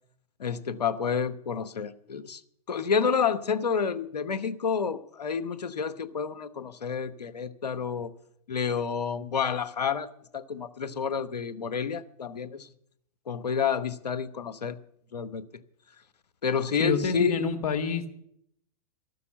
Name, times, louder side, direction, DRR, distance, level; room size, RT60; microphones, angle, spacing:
voice 1, 0.4-2.4 2.7-8.1 8.5-10.1 10.3-12.7 13.3-14.8 15.1-15.4 16.4-17.5, left 6 dB, 90° left, 13 dB, 0.9 m, -29 dB
voice 2, 16.8-18.1, left 6 dB, 70° left, 6 dB, 1.8 m, -27 dB
13.5 x 6.9 x 9.7 m, 0.73 s
hypercardioid pair, 110°, 20 cm